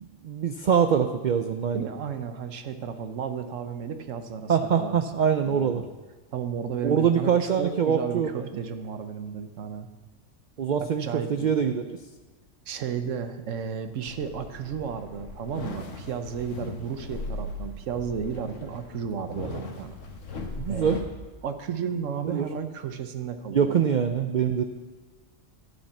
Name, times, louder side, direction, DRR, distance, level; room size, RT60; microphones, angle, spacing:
voice 1, 0.0-1.9 4.5-5.8 6.8-8.4 10.6-12.0 20.6-21.0 22.2-22.5 23.5-24.6, right 7 dB, 55° right, 7 dB, 0.5 m, -24 dB
voice 2, 1.7-4.9 5.4-5.9 6.3-9.9 10.8-11.5 12.7-20.0 20.7-21.0 21.4-23.8, right 7 dB, 85° right, 9 dB, 1.2 m, -33 dB
sound 1, 14.1-21.0, left 3 dB, 80° left, 1.5 m, -38 dB
12.0 x 5.3 x 7.1 m, 1.3 s
omnidirectional pair, 1.3 m